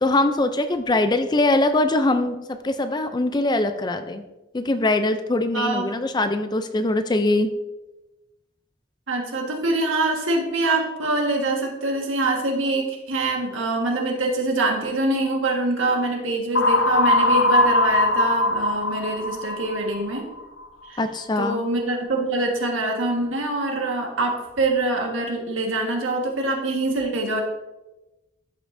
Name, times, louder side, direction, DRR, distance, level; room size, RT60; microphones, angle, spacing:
voice 1, 0.0-4.2 4.5-7.5 21.0-21.6, left 2 dB, 20° left, 9 dB, 0.4 m, -22 dB
voice 2, 5.5-6.0 9.1-20.3 20.8-21.0 21.4-27.4, right 2 dB, 80° right, 1 dB, 1.6 m, -24 dB
sound 1, 16.6-20.4, left 2 dB, 70° left, 0.6 m, -20 dB
12.5 x 5.5 x 2.6 m, 1.0 s
head